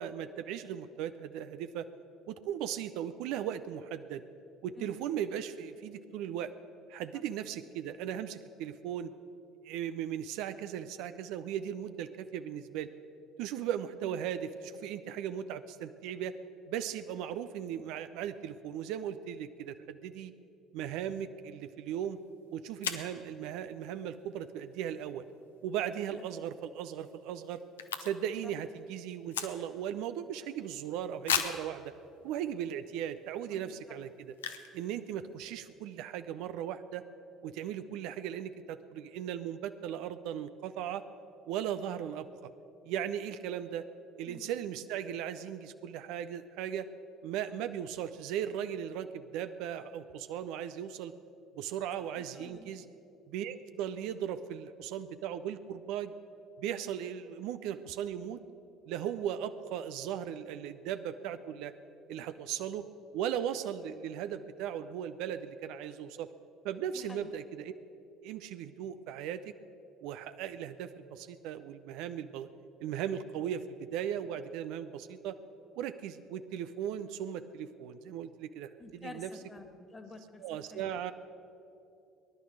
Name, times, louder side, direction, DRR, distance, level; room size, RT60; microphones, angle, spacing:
voice 1, 0.0-1.9 2.3-4.2 4.6-6.5 6.9-9.1 9.6-12.9 13.4-16.4 16.7-20.3 20.7-22.2 22.5-25.2 25.6-27.6 28.0-31.9 32.2-34.3 34.7-37.0 37.4-41.0 41.5-42.5 42.8-43.9 44.2-46.9 47.2-51.1 51.6-52.8 53.3-56.1 56.6-58.4 58.9-61.7 62.1-62.8 63.1-66.3 66.6-67.7 68.2-69.5 70.0-72.5 72.8-75.4 75.8-79.3 80.4-81.1, right 9 dB, 65° right, 11 dB, 0.5 m, -37 dB
sound 1, 22.2-22.3 22.8-23.2 26.1-26.4 26.7-26.8 26.9-28.4 28.7-29.9 30.4-30.5 31.2-31.7 32.4-32.5 33.0-33.2 34.3-34.8 35.1-35.2 35.3-35.7, left 8 dB, 80° left, 0.7 m, -35 dB
voice 2, 33.5-34.0 44.3-44.5 52.0-52.7 66.9-67.4 78.8-80.4 80.7-80.9, left 2 dB, 25° left, 7 dB, 1.8 m, -50 dB
19.0 x 11.0 x 6.3 m, 2.8 s
figure-of-eight pair, 55°, 0 cm